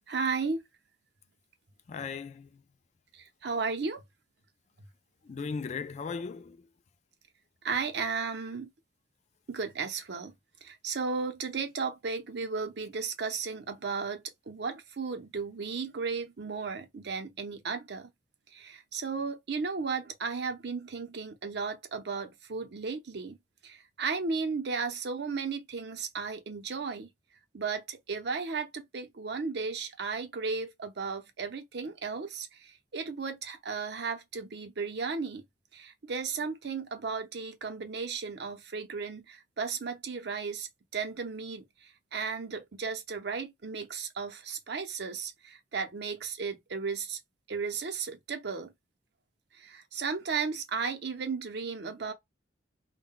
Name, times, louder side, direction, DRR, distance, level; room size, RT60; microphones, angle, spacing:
voice 1, 0.1-0.6 3.1-4.0 7.6-8.7 9.5-10.3 10.6-18.1 18.5-23.4 23.6-27.1 27.5-35.4 35.7-47.2 47.5-48.7 49.5-52.1, right 5 dB, 60° right, 0.6 m, -35 dB
voice 2, 1.9-2.6 5.2-6.6, left 5 dB, 35° left, 0.3 m, -37 dB
2.2 x 2.2 x 3.6 m
head